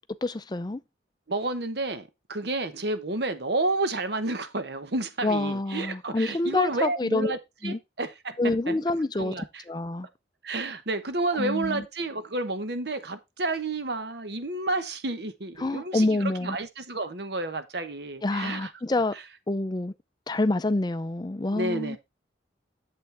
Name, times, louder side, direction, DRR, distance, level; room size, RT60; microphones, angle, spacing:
voice 1, 0.2-0.8 5.2-7.3 7.6-7.8 8.4-9.3 9.7-10.1 11.4-11.8 15.6-16.6 18.2-19.1 19.5-19.9 20.3-22.0, left 2 dB, 20° left, 0.4 m, -27 dB
voice 2, 1.3-8.4 8.7-8.8 9.1-9.6 10.4-18.7 19.1-19.2 21.5-22.0, right 2 dB, 60° right, 1.0 m, -30 dB
8.3 x 7.6 x 3.4 m
head